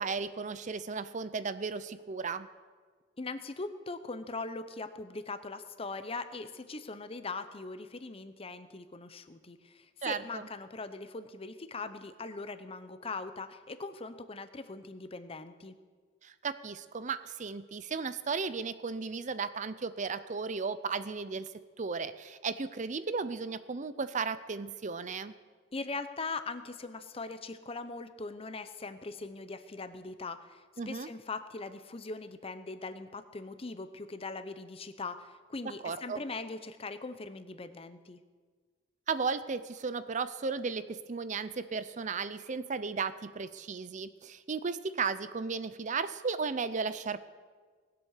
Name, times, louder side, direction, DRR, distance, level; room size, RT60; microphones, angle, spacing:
voice 1, 0.0-2.5 10.0-10.5 16.2-21.5 21.8-25.3 30.8-31.1 35.6-36.2 39.1-47.2, right 5 dB, 40° right, 13 dB, 0.6 m, -35 dB
voice 2, 3.2-15.8 25.7-38.2, left 3 dB, 30° left, 11 dB, 0.8 m, -41 dB
19.5 x 7.9 x 6.6 m, 1.5 s
head